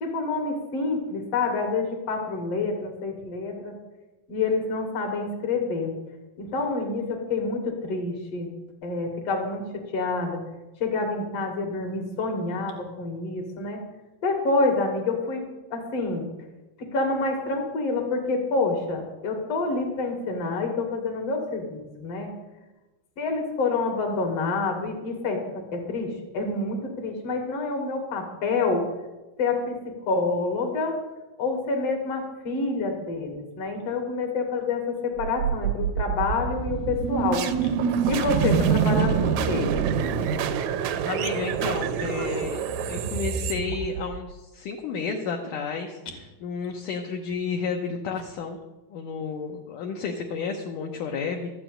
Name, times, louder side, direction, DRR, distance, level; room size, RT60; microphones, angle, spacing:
voice 1, 0.0-3.7 4.3-5.9 6.4-8.5 8.8-9.6 9.9-10.4 10.8-13.8 14.2-15.4 15.7-16.3 16.8-22.3 23.2-28.9 29.4-31.0 31.4-37.5 38.1-39.7, left 3 dB, 50° left, 3 dB, 2.7 m, -27 dB
sound 1, 35.2-44.3, right 7 dB, 75° right, 1.7 m, -26 dB
voice 2, 41.0-48.6 48.9-51.5, left 5 dB, 70° left, 1 dB, 2.3 m, -32 dB
13.0 x 6.0 x 9.0 m, 1.1 s
omnidirectional pair, 4.2 m